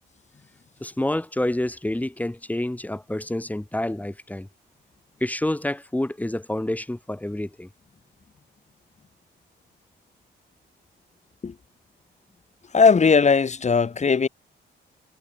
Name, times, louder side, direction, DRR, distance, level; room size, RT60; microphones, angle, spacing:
voice 1, 0.8-4.5 5.2-7.7, left 1 dB, 10° left, 3.7 m, -28 dB
voice 2, 12.7-14.3, left 5 dB, 35° left, 2.7 m, -18 dB
cardioid pair, 90°, 20 cm